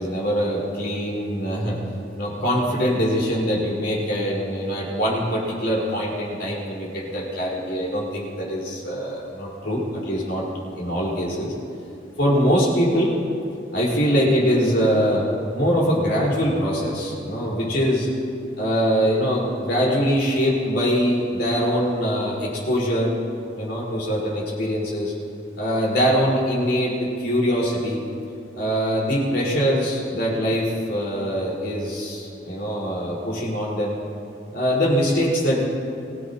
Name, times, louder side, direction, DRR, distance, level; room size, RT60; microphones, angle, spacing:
voice 1, 0.0-1.8 2.1-10.4 10.8-11.5 12.2-13.2 13.7-15.3 15.5-18.1 18.6-23.1 23.5-25.1 25.6-28.0 28.5-34.0 34.5-35.7, equal, 60° left, -5 dB, 4.8 m, -23 dB
25.0 x 16.0 x 3.0 m, 2.6 s
head